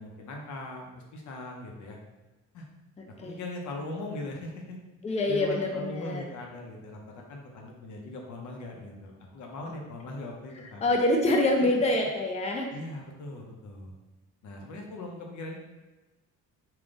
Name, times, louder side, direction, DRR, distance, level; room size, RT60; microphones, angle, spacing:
voice 1, 0.0-2.0 2.5-2.7 3.1-4.8 5.1-10.9 12.7-13.9 14.4-15.6, left 2 dB, 75° left, 0 dB, 0.8 m, -40 dB
voice 2, 5.0-6.2 10.8-12.7, left 1 dB, 20° left, 1 dB, 0.5 m, -25 dB
3.8 x 2.3 x 3.6 m, 1.1 s
cardioid pair, 90°, 30 cm